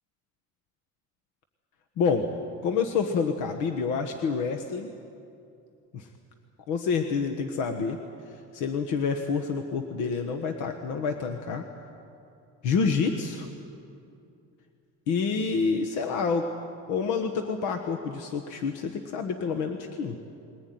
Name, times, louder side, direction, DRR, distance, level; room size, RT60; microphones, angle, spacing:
voice 1, 2.0-2.3 2.6-4.9 5.9-6.1 6.7-8.0 8.5-11.7 12.6-13.5 15.1-16.5 16.9-20.2, left 5 dB, 85° left, 6 dB, 1.5 m, -28 dB
21.5 x 19.0 x 9.4 m, 2.6 s
cardioid pair, 155°, 29 cm